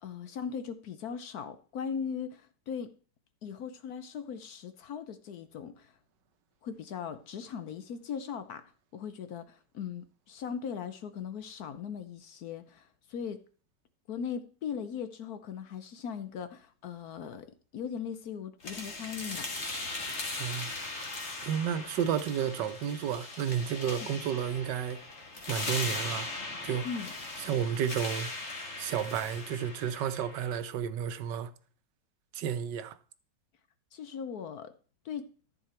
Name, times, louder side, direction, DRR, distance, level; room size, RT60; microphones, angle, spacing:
voice 1, 0.0-2.9 3.4-5.9 6.6-8.6 8.9-13.4 14.1-19.5 24.0-24.1 26.8-27.1 33.9-34.7 35.0-35.3, left 7 dB, 60° left, 1.1 m, -39 dB
sound 1, 18.6-30.6, left 2 dB, 35° left, 1.9 m, -39 dB
voice 2, 20.4-20.7 21.4-25.0 25.5-26.3 26.6-26.9 27.4-28.3 28.7-31.5 32.3-33.0, right 8 dB, 70° right, 1.4 m, -32 dB
13.5 x 6.7 x 4.4 m
omnidirectional pair, 2.2 m